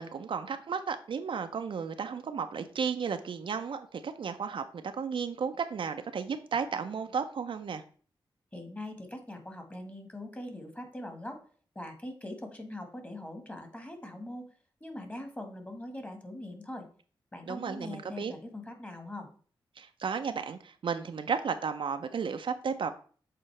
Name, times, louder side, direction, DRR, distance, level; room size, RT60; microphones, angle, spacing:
voice 1, 0.0-7.8 17.5-18.3 19.8-22.9, right 6 dB, 70° right, 7 dB, 0.6 m, -34 dB
voice 2, 8.5-11.4 11.7-14.5 14.8-16.9 17.3-19.3, left 1 dB, 15° left, 5 dB, 1.6 m, -42 dB
7.6 x 3.9 x 3.3 m, 0.42 s
cardioid pair, 65°, 9 cm